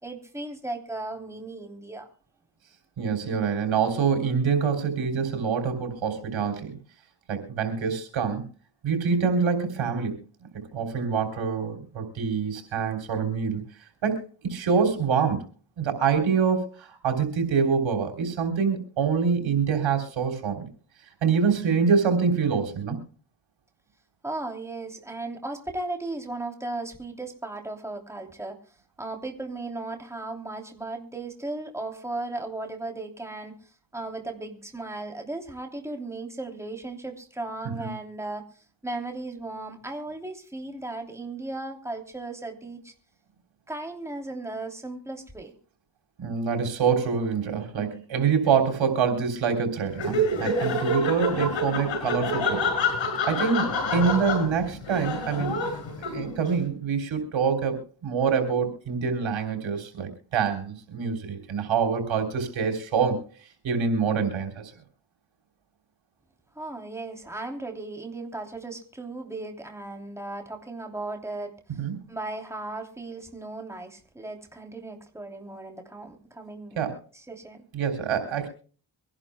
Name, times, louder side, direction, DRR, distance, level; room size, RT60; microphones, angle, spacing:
voice 1, 0.0-2.1 24.2-28.6 29.0-42.9 43.7-45.5 66.5-71.8 72.1-76.8 77.1-77.6, right 2 dB, 5° right, 3 dB, 3.0 m, -36 dB
voice 2, 3.0-6.8 7.3-8.5 8.8-10.2 10.5-13.6 14.0-15.5 15.8-20.7 21.2-23.0 37.8-37.9 46.2-52.7 53.3-55.6 56.1-63.2 63.6-64.7 71.8-72.0 76.8-77.0 77.7-78.5, right 6 dB, 85° right, 5 dB, 3.4 m, -25 dB
Laughter, 49.9-56.5, left 1 dB, 80° left, 6.4 m, -27 dB
25.0 x 11.5 x 2.2 m, 0.40 s
cardioid pair, 65°, 45 cm